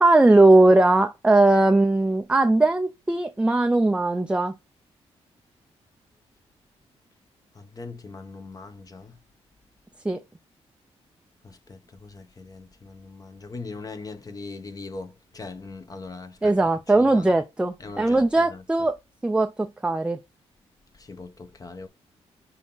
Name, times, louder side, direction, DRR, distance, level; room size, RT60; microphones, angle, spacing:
voice 1, 0.0-4.5 10.0-10.2 16.4-19.0 19.2-20.2, right 2 dB, 10° right, 0.5 m, -19 dB
voice 2, 7.5-9.2 11.4-16.7 16.9-17.3 17.8-18.6 20.9-21.9, left 3 dB, 35° left, 1.0 m, -40 dB
6.1 x 2.9 x 5.4 m
cardioid pair, 90°, 11 cm